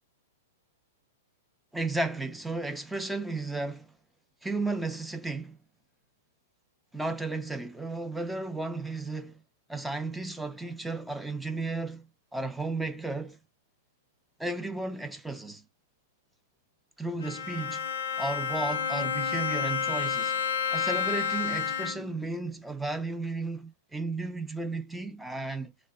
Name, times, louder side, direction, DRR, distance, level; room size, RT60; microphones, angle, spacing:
voice 1, 1.7-3.9 4.4-5.6 6.9-9.4 9.7-12.1 12.3-13.4 14.4-15.6 17.0-17.9 18.2-20.4 20.7-25.7, right 2 dB, 5° right, 0.4 m, -34 dB
Bowed string instrument, 17.2-22.3, left 7 dB, 80° left, 0.4 m, -30 dB
3.2 x 2.0 x 3.7 m
hypercardioid pair, 165°, 0 cm